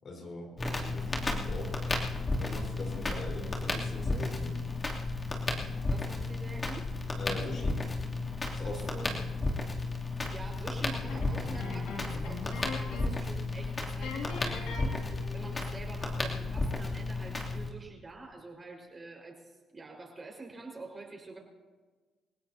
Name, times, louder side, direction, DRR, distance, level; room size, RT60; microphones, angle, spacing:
voice 1, 0.0-1.7 2.4-4.6 7.2-7.8 8.5-9.1, left 2 dB, 50° left, 1 dB, 4.4 m, -41 dB
Crackle, 0.6-17.7, left 3 dB, 30° left, 3.0 m, -33 dB
voice 2, 5.8-6.9 8.6-9.4 10.3-21.4, right 3 dB, 30° right, 1 dB, 5.2 m, -46 dB
sound 1, 11.1-13.3 13.5-13.7 14.0-15.6, left 4 dB, 85° left, 2.7 m, -41 dB
29.0 x 16.5 x 2.9 m, 1.4 s
cardioid pair, 90°, 0 cm